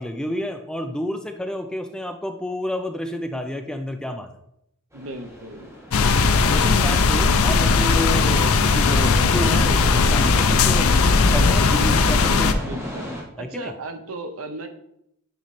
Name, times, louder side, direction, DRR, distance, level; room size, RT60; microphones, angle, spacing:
voice 1, 0.0-4.3 6.5-10.9 11.3-12.6 13.4-13.7, left 1 dB, 5° left, 6 dB, 0.4 m, -30 dB
sound 1, 4.9-13.2, equal, 15° right, 1.2 m, -35 dB
voice 2, 4.9-5.7 12.6-13.1 13.3-14.7, right 2 dB, 70° right, 7 dB, 0.8 m, -35 dB
sound 2, 5.9-12.5, left 4 dB, 70° left, 0.5 m, -18 dB
9.2 x 3.1 x 4.2 m, 0.76 s
head